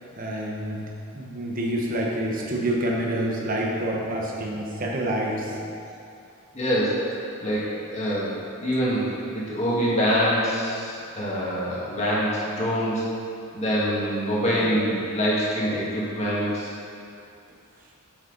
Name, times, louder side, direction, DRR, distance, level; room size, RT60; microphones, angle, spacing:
voice 1, 0.2-0.8 1.1-5.6 14.6-14.7, right 1 dB, 40° right, -2 dB, 1.1 m, -27 dB
voice 2, 6.5-8.3 8.6-9.1 9.3-13.0 13.5-16.7, equal, 30° left, -7 dB, 1.9 m, -25 dB
8.4 x 6.2 x 4.0 m, 2.5 s
head